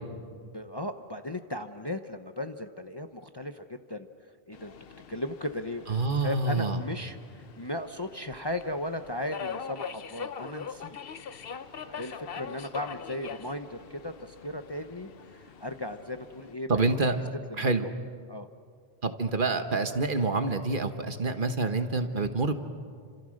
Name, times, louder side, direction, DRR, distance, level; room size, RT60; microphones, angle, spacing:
voice 1, 0.5-4.1 4.5-4.7 5.1-11.0 11.8-17.2 17.5-17.7 18.3-18.5, left 1 dB, 25° left, 7 dB, 0.8 m, -36 dB
Subway metro underground, 4.5-16.5, left 6 dB, 60° left, 1.0 m, -43 dB
voice 2, 5.9-6.8 16.7-17.1 17.6-17.8 19.0-22.5, right 3 dB, 50° right, 8 dB, 1.5 m, -27 dB
30.0 x 26.5 x 6.5 m, 2.1 s
omnidirectional pair, 1.1 m